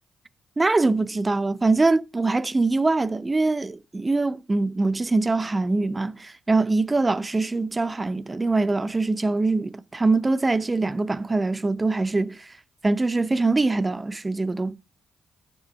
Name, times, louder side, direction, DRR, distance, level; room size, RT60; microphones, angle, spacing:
voice 1, 0.6-12.5 12.8-14.8, right 3 dB, 25° right, 0.5 m, -23 dB
9.1 x 4.1 x 5.3 m
hypercardioid pair, 40°, 0 cm